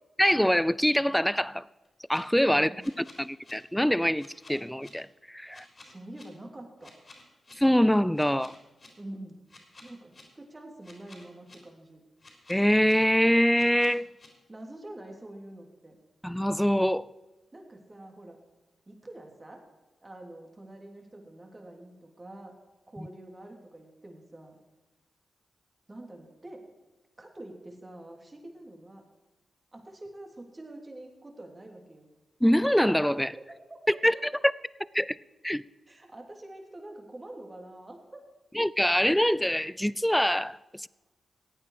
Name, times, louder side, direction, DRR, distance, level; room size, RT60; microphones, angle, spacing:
voice 1, 0.2-1.6 2.1-2.7 3.2-5.7 7.6-8.6 12.5-14.1 16.2-17.1 23.0-23.1 32.4-33.3 33.9-34.1 34.4-34.5 34.9-35.2 35.4-35.6 38.5-40.9, equal, 5° left, 0.4 m, -24 dB
sound 1, 1.8-2.2 2.8-3.5 4.2-4.9 5.5-6.2 6.8-7.5 8.1-8.9 9.5-10.2 10.8-11.5 12.2-12.9 13.5-14.3, left 2 dB, 45° left, 3.9 m, -52 dB
voice 2, 5.8-6.9 9.0-9.4 9.8-12.0 14.5-16.0 17.5-18.4 18.9-19.6 20.0-22.6 22.9-24.6 25.9-26.6 27.2-29.0 29.7-32.1 33.1-33.8 34.1-34.2 35.9-38.2, right 1 dB, 30° right, 3.0 m, -46 dB
15.5 x 9.0 x 4.8 m
supercardioid pair, 45°, 0 cm